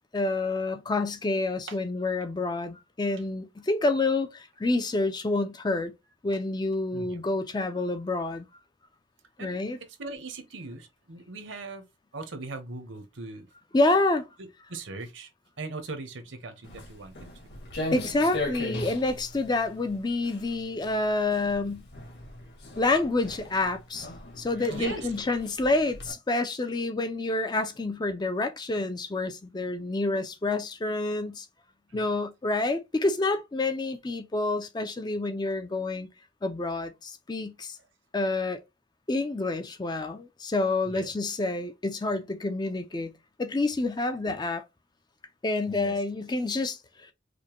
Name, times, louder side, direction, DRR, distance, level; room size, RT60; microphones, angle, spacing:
voice 1, 0.1-5.9 6.2-8.5 9.4-9.8 13.7-14.3 17.9-21.8 22.8-24.1 24.4-31.5 31.9-36.1 36.4-37.8 38.1-38.6 39.1-43.1 43.4-44.6 45.4-47.1, left 2 dB, 20° left, 0.4 m, -28 dB
voice 2, 9.4-11.9 12.1-13.5 14.4-15.3 15.6-17.3 24.7-25.1 31.9-32.0 40.8-41.1 45.7-46.0, right 3 dB, 75° right, 0.9 m, -40 dB
Walk footsteps, 16.6-26.1, left 2 dB, 55° left, 1.6 m, -39 dB
5.0 x 2.2 x 2.9 m
head